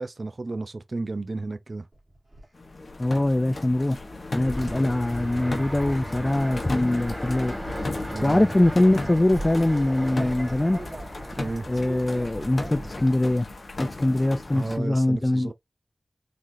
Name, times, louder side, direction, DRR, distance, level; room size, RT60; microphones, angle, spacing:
voice 1, 0.0-1.9 8.1-8.5 11.3-11.7 14.5-15.5, right 3 dB, 70° right, 0.5 m, -32 dB
sound 1, 1.9-2.5 4.2-4.5 5.2-6.0 6.8-7.1 8.2-8.7 9.3-13.1 13.4-14.0 14.2-14.8, right 1 dB, 50° right, 1.8 m, -42 dB
sound 2, 2.5-14.8, left 2 dB, 80° left, 1.0 m, -36 dB
voice 2, 3.0-4.1 4.3-7.6 8.2-10.8 11.7-13.5 13.8-15.5, left 1 dB, 30° left, 0.4 m, -23 dB
Fixed-wing aircraft airplane, 4.4-13.1, equal, 5° right, 1.6 m, -37 dB
3.9 x 3.1 x 2.6 m
wide cardioid pair, 60°, 0 cm